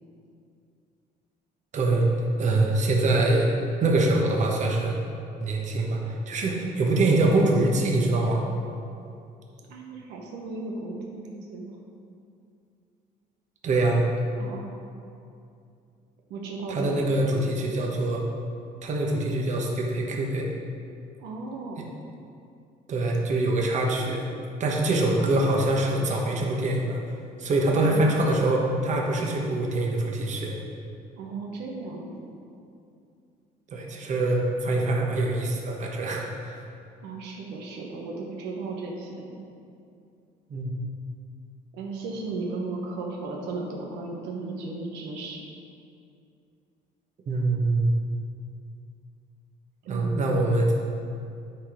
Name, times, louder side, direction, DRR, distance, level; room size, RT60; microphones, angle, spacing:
voice 1, 1.7-5.0 5.4-8.5 13.6-14.0 16.7-18.2 18.8-20.5 21.8-21.9 22.9-24.3 24.6-27.0 27.4-30.6 33.7-36.6 40.5-40.7 47.3-48.0 49.9-50.7, right 2 dB, 45° right, -1 dB, 1.2 m, -24 dB
voice 2, 9.7-11.8 14.4-14.7 16.3-17.1 21.2-21.9 27.7-28.1 31.2-32.1 37.0-39.5 41.7-45.4 49.8-50.3, right 3 dB, 90° right, -1 dB, 1.1 m, -35 dB
9.4 x 4.1 x 4.9 m, 2.5 s
cardioid pair, 110°, 17 cm